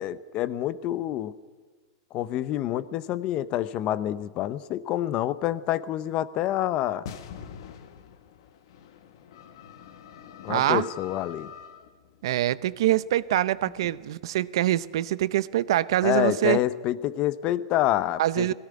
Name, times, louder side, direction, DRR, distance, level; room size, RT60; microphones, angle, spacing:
voice 1, 0.0-1.3 2.1-7.1 10.4-11.5 16.0-18.5, left 13 dB, 35° left, 16 dB, 0.8 m, -27 dB
sound 1, 7.1-16.6, left 8 dB, 70° left, 1.7 m, -46 dB
voice 2, 10.5-10.9 12.2-16.6 18.2-18.5, right 14 dB, 75° right, 18 dB, 0.7 m, -24 dB
18.5 x 17.0 x 9.7 m, 1.4 s
supercardioid pair, 150°, 3 cm